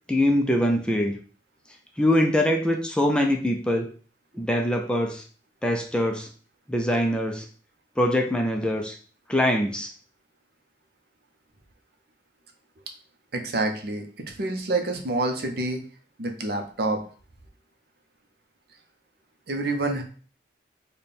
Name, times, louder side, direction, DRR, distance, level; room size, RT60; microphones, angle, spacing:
voice 1, 0.1-1.2 2.0-3.9 4.3-5.2 5.6-6.3 6.7-7.5 8.0-9.0 9.3-9.9, left 1 dB, 5° left, 2 dB, 0.4 m, -23 dB
voice 2, 13.3-15.9 16.2-17.0 19.5-20.0, right 2 dB, 60° right, 4 dB, 0.6 m, -27 dB
4.1 x 2.2 x 3.4 m, 0.42 s
head